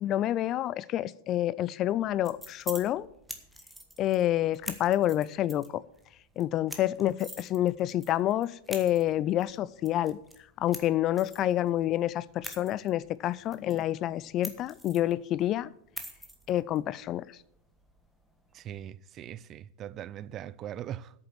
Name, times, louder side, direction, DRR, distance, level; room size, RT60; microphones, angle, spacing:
voice 1, 0.0-3.1 4.0-5.8 6.4-10.2 10.6-15.7 16.5-17.2, left 13 dB, 35° left, 0.3 m, -28 dB
sound 1, 2.0-18.9, equal, ahead, 1.4 m, -47 dB
voice 2, 18.5-21.1, right 11 dB, 30° right, 0.4 m, -40 dB
8.7 x 7.2 x 8.4 m
figure-of-eight pair, 90°, 0 cm